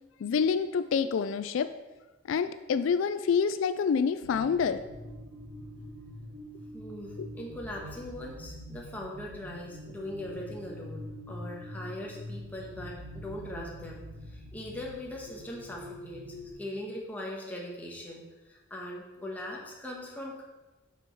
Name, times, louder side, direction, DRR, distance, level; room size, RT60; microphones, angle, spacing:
voice 1, 0.2-1.7 2.3-4.8 7.2-7.3, left 6 dB, 70° left, 11 dB, 0.3 m, -27 dB
sound 1, 4.2-16.5, left 1 dB, 85° right, 2.7 m, -45 dB
voice 2, 6.7-16.2 16.6-20.4, left 1 dB, 10° left, -2 dB, 1.3 m, -40 dB
7.8 x 6.1 x 4.6 m, 1.1 s
head